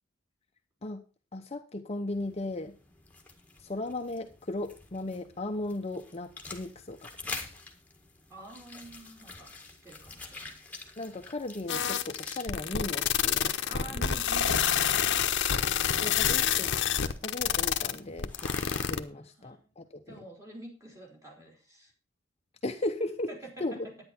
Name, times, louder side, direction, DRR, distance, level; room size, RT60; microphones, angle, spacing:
voice 1, 1.3-2.8 3.6-7.4 11.0-13.9 16.0-16.7 17.2-20.2 22.6-23.3 23.6-23.8, left 2 dB, 30° left, 5 dB, 0.8 m, -36 dB
sound 1, 2.1-19.0, left 3 dB, 10° left, 1.6 m, -48 dB
voice 2, 8.3-10.8 13.7-16.4 19.1-19.7 20.1-21.9 23.3-23.9, right 1 dB, 15° right, 0 dB, 3.9 m, -48 dB
sound 2, 11.7-19.0, left 9 dB, 60° left, 0.9 m, -27 dB
10.5 x 9.7 x 4.3 m, 0.33 s
head